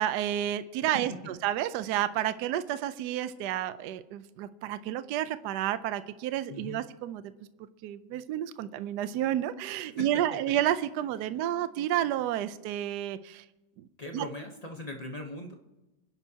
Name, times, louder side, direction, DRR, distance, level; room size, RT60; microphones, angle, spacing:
voice 1, 0.0-7.3 7.8-13.4 13.8-13.9 14.1-14.3, right 12 dB, 70° right, 13 dB, 1.1 m, -30 dB
voice 2, 6.5-6.8 10.0-10.4 14.0-15.5, left 1 dB, 30° left, 2 dB, 0.7 m, -40 dB
28.5 x 10.5 x 2.8 m, 1.0 s
omnidirectional pair, 2.1 m